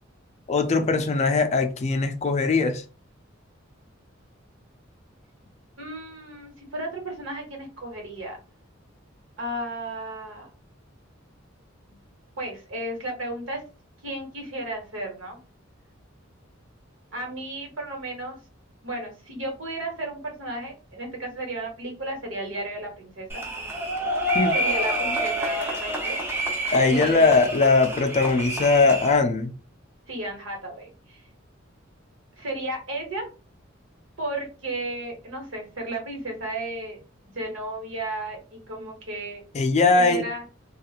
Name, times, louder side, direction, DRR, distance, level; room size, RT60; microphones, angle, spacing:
voice 1, 0.5-2.8 24.3-24.5 26.7-29.5 39.5-40.3, left 3 dB, 35° left, 0.4 m, -20 dB
voice 2, 5.8-8.4 9.4-10.5 11.9-12.0 12.4-13.6 14.0-15.4 17.1-18.4 18.8-23.4 24.5-26.2 26.9-27.5 30.1-31.2 32.4-33.3 34.2-37.0 37.3-39.4 39.9-40.4, right 1 dB, 75° right, 1.2 m, -34 dB
sound 1, 23.3-29.2, equal, 15° right, 0.7 m, -28 dB
3.0 x 2.4 x 2.4 m
head